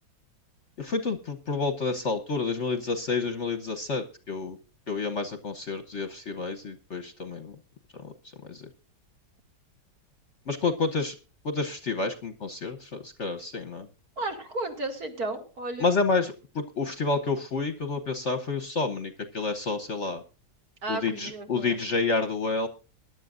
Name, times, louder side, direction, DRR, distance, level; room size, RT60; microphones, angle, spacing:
voice 1, 0.8-4.6 4.9-7.5 8.0-8.1 8.5-8.7 10.5-11.1 11.4-13.9 15.8-20.2 20.9-22.7, left 4 dB, 45° left, 8 dB, 1.1 m, -29 dB
voice 2, 14.2-15.9 20.8-21.8, right 2 dB, 55° right, 4 dB, 2.7 m, -33 dB
22.0 x 10.5 x 2.5 m, 0.32 s
omnidirectional pair, 2.0 m